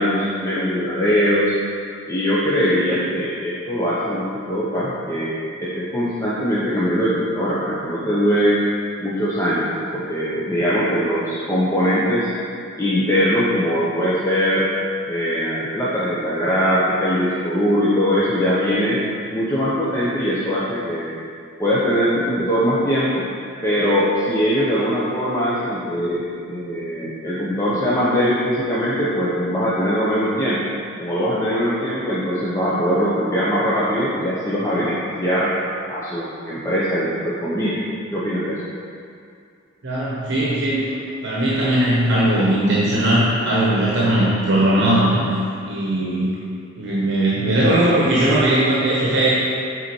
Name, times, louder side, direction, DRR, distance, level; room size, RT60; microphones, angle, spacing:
voice 1, 0.0-1.5 2.1-5.3 5.6-8.6 9.0-12.3 12.8-14.7 15.1-19.0 19.3-21.1 21.6-23.3 23.6-30.6 31.0-35.5 35.9-37.8 38.1-38.6, equal, 15° left, -9 dB, 0.7 m, -21 dB
voice 2, 39.8-40.8 41.2-45.3 45.7-46.3 46.8-49.4, right 1 dB, 55° right, -7 dB, 1.1 m, -18 dB
8.1 x 4.1 x 4.4 m, 2.4 s
head